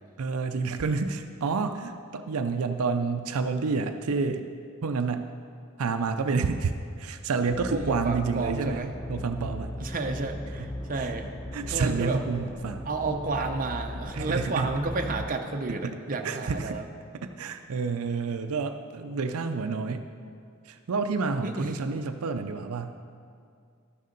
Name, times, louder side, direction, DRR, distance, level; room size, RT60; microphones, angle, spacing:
voice 1, 0.2-4.5 4.8-5.3 5.8-6.7 7.0-8.8 9.1-9.8 10.6-10.7 10.9-11.1 11.5-12.9 14.1-14.7 15.7-16.0 16.2-16.8 17.1-20.1 20.7-22.9, right 4 dB, 75° right, 7 dB, 0.5 m, -29 dB
sound 1, 7.5-15.3, left 1 dB, 15° left, 0.3 m, -38 dB
voice 2, 7.7-8.9 9.8-11.3 11.7-12.2 12.9-16.8 21.4-21.7, right 3 dB, 40° right, 4 dB, 0.6 m, -31 dB
12.5 x 6.6 x 5.2 m, 2.2 s
head